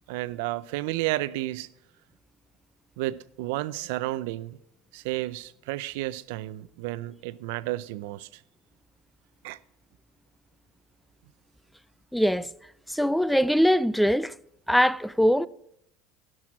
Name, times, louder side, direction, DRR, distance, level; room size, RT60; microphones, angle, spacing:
voice 1, 0.1-1.7 3.0-4.6 4.9-8.3 9.4-9.6, right 17 dB, 80° right, 0.5 m, -32 dB
voice 2, 12.1-12.5 12.9-14.3 14.7-15.5, equal, ahead, 0.3 m, -22 dB
16.5 x 6.2 x 6.1 m
supercardioid pair, 120°, 0 cm